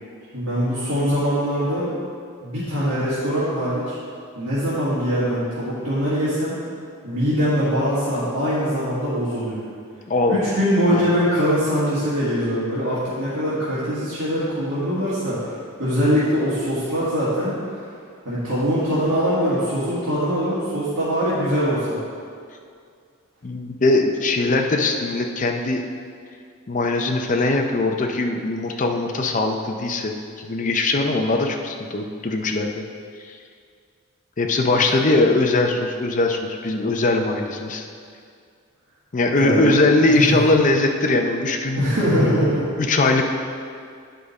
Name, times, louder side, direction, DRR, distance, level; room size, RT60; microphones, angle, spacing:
voice 1, 0.3-1.9 2.4-3.9 4.3-6.5 7.0-9.6 10.3-17.5 18.3-22.0 34.6-34.8 39.3-39.8 40.2-40.4 41.8-42.7, equal, 90° right, -11 dB, 1.7 m, -22 dB
voice 2, 10.1-10.5 10.9-11.1 23.4-25.8 26.7-32.8 33.3-33.4 34.4-37.9 39.1-41.9 42.2-42.3 42.8-43.2, left 2 dB, 35° left, 3 dB, 0.5 m, -21 dB
9.2 x 5.0 x 4.1 m, 2.2 s
head